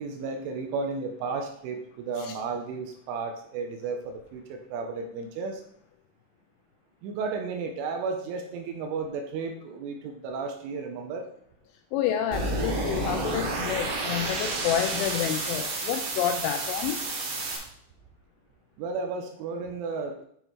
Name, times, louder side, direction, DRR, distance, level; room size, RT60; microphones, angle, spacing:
voice 1, 0.0-5.6 7.0-11.3 18.8-20.3, right 4 dB, 85° right, 4 dB, 3.1 m, -33 dB
voice 2, 11.9-17.0, left 10 dB, 85° left, 6 dB, 2.8 m, -29 dB
sound 1, 12.3-17.6, right 2 dB, 70° right, 2.1 m, -30 dB
9.1 x 4.1 x 4.5 m, 0.66 s
omnidirectional pair, 5.9 m